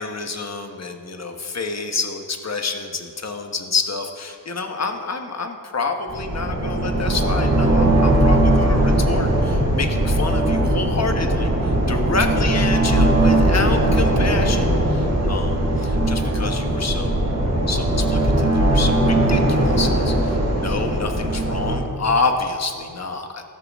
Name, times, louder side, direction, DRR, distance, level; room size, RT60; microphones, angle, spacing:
voice 1, 0.0-17.2 17.7-20.1 20.5-23.4, left 4 dB, 40° left, 5 dB, 1.2 m, -28 dB
sound 1, 6.1-21.8, right 1 dB, 40° right, 3.7 m, -19 dB
15.5 x 13.5 x 3.6 m, 2.3 s
wide cardioid pair, 120°, 39 cm